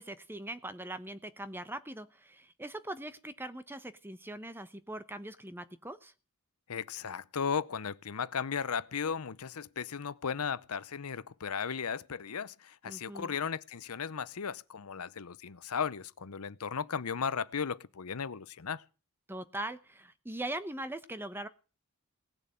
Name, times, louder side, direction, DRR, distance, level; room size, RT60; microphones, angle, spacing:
voice 1, 0.0-6.1 12.9-13.3 19.3-21.5, right 1 dB, 10° right, 0.9 m, -41 dB
voice 2, 6.7-18.8, left 6 dB, 90° left, 0.7 m, -36 dB
18.0 x 6.9 x 8.9 m
head